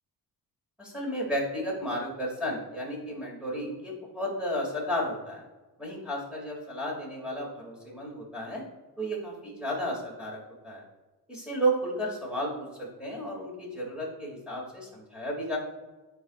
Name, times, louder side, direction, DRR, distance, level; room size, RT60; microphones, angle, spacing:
voice 1, 0.8-5.4 5.8-8.6 9.0-10.8 11.3-15.6, equal, ahead, -4 dB, 2.3 m, -33 dB
12.0 x 4.8 x 2.4 m, 1.2 s
cardioid pair, 145°, 39 cm